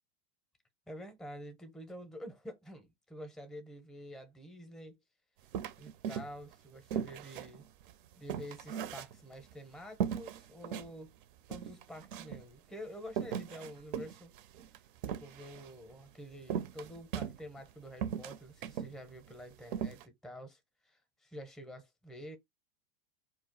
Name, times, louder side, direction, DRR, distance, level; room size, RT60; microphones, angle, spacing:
voice 1, 0.9-5.0 5.8-7.6 8.1-11.1 11.5-14.3 15.1-22.4, equal, ahead, 0.6 m, -48 dB
sound 1, 5.5-6.5 6.9-9.5 10.0-10.9 11.2-11.3 11.5-12.5 13.1-15.7 16.5-17.7 18.0-18.9 19.3-19.4 19.7-20.0, right 8 dB, 60° right, 0.5 m, -38 dB
2.4 x 2.0 x 3.7 m
hypercardioid pair, 110°, 29 cm